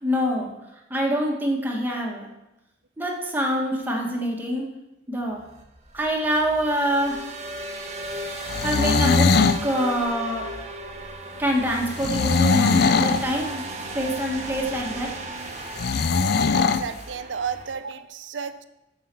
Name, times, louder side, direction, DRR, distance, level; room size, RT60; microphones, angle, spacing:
voice 1, 0.0-0.5 0.9-2.3 3.0-4.7 5.1-5.4 5.9-7.2 8.6-9.3 9.6-10.4 11.4-13.6 13.9-15.1, equal, 10° right, -1 dB, 1.9 m, -25 dB
sound 1, 5.3-17.7, right 1 dB, 40° right, 1.3 m, -35 dB
sound 2, 8.4-9.6 12.0-13.3 15.8-16.9, left 4 dB, 60° left, 0.5 m, -20 dB
voice 2, 16.5-18.6, right 6 dB, 85° right, 11 dB, 0.7 m, -32 dB
7.6 x 6.9 x 7.0 m, 0.93 s
head